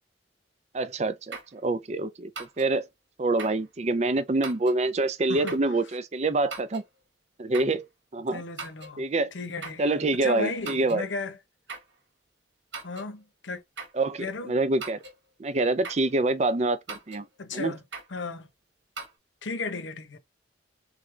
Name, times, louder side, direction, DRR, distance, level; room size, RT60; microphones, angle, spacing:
voice 1, 0.7-2.3 2.6-2.8 3.2-6.8 7.4-7.9 8.1-8.4 9.0-9.3 9.8-11.1 13.9-15.0 15.4-17.3 17.5-17.8, right 2 dB, 35° right, 0.5 m, -26 dB
sound 1, 1.3-1.6 2.4-2.7 3.4-3.6 4.4-4.8 5.5-5.7 6.5-6.9 7.5-7.8 8.6-9.0 9.6-9.9 10.6-11.0 11.7-11.9 12.7-13.1 13.8-14.0 14.8-15.2 15.8-16.1 16.9-17.3 17.9-18.2 19.0-19.1, right 4 dB, 75° right, 1.5 m, -40 dB
voice 2, 8.3-9.0 9.3-11.4 12.8-13.6 14.2-14.5 17.4-17.8 18.1-18.5 19.4-20.2, left 3 dB, 85° left, 0.9 m, -35 dB
3.8 x 3.6 x 3.3 m
head